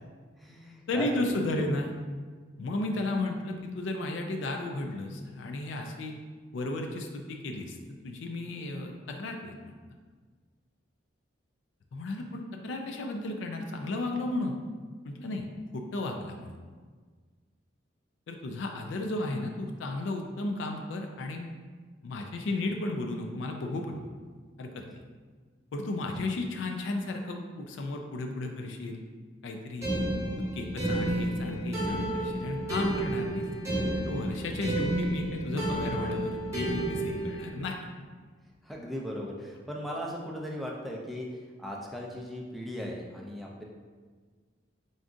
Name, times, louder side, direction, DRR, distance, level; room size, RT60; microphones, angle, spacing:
voice 1, 0.4-1.1 1.4-1.6 38.6-43.6, equal, ahead, -2 dB, 0.4 m, -38 dB
voice 2, 0.9-1.9 2.6-6.1 6.5-7.8 8.0-9.7 11.9-14.6 15.0-15.5 15.7-16.6 18.3-21.5 22.0-24.1 24.6-24.8 25.7-29.0 29.4-30.1 30.5-33.5 34.0-37.8, left 2 dB, 70° left, 3 dB, 0.4 m, -34 dB
sound 1, 29.8-37.5, right 1 dB, 15° right, 1.1 m, -31 dB
3.8 x 3.6 x 2.5 m, 1.5 s
head